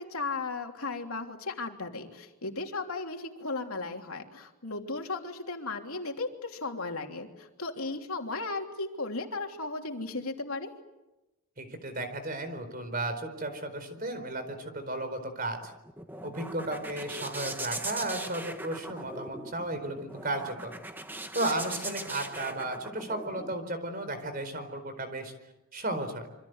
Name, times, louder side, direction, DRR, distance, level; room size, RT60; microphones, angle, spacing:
voice 1, 0.0-10.7 21.4-21.6, left 3 dB, 85° left, 3 dB, 3.2 m, -36 dB
voice 2, 11.6-15.6 16.2-20.7 21.3-25.3 25.7-26.3, right 2 dB, 40° right, 9 dB, 4.5 m, -34 dB
sound 1, 15.6-23.5, right 2 dB, 10° right, 1.4 m, -40 dB
27.0 x 25.0 x 8.1 m, 0.99 s
head